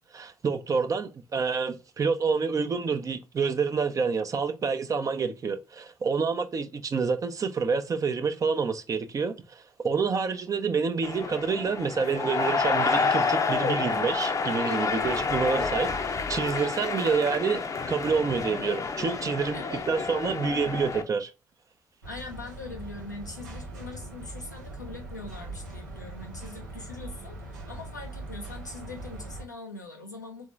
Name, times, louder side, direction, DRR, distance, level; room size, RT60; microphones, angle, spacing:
voice 1, 0.1-21.3, right 5 dB, 35° right, 0.6 m, -28 dB
sound 1, 11.0-21.0, left 4 dB, 35° left, 0.7 m, -29 dB
voice 2, 19.5-20.4 22.0-30.5, left 3 dB, 90° left, 0.7 m, -42 dB
sound 2, 22.0-29.4, right 2 dB, 80° right, 0.9 m, -41 dB
3.8 x 3.6 x 3.1 m
figure-of-eight pair, 40°, 9 cm